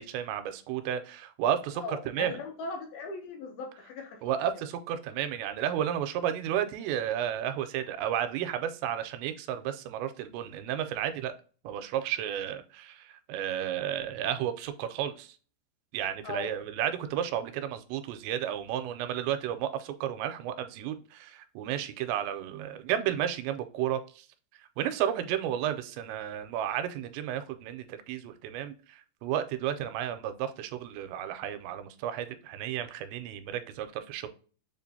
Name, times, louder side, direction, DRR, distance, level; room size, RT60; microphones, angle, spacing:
voice 1, 0.0-2.4 4.2-11.3 11.6-15.4 15.9-24.3 24.8-34.3, right 10 dB, 85° right, 9 dB, 2.7 m, -32 dB
voice 2, 1.8-4.2 16.2-16.5, left 3 dB, 75° left, 2 dB, 2.3 m, -38 dB
7.2 x 2.5 x 2.6 m, 0.39 s
omnidirectional pair, 5.0 m